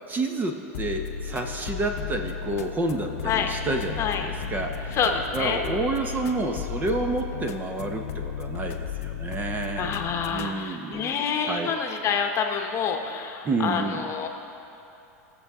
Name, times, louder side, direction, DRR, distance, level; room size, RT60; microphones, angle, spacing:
voice 1, 0.1-5.0 5.3-10.0 10.3-11.1 11.5-11.7 13.4-14.1, right 2 dB, 20° right, 4 dB, 0.9 m, -29 dB
sound 1, 0.7-10.5, left 8 dB, 80° left, 0.7 m, -34 dB
voice 2, 4.0-4.3 4.9-5.6 9.8-14.3, left 6 dB, 35° left, 3 dB, 1.0 m, -27 dB
18.5 x 7.0 x 3.7 m, 3.0 s
hypercardioid pair, 115°, 8 cm